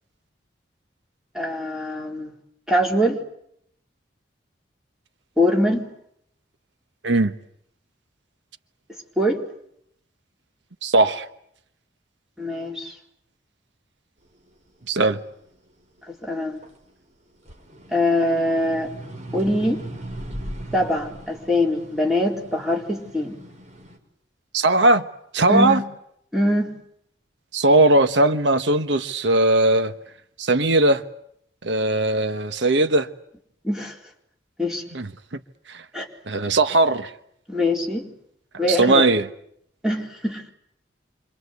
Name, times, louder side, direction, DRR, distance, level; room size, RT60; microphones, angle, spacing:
voice 1, 1.3-2.3 2.7-3.2 5.4-5.8 9.2-9.4 12.4-12.9 16.2-16.6 17.9-18.9 19.3-19.8 20.7-23.4 25.5-25.8 26.3-26.7 33.6-34.0 34.6-34.8 35.9-36.1 37.5-38.1 38.6-39.0 39.8-40.5, left 1 dB, 5° right, 4.1 m, -23 dB
voice 2, 10.8-11.3 14.9-15.2 24.5-25.1 25.3-25.8 27.5-29.9 30.4-31.0 31.6-33.1 34.9-35.1 35.7-35.8 36.3-37.1 38.7-39.3, right 2 dB, 80° right, 1.2 m, -19 dB
sound 1, 14.3-16.9 17.3-24.0, right 1 dB, 40° right, 5.7 m, -39 dB
28.5 x 25.5 x 8.2 m
head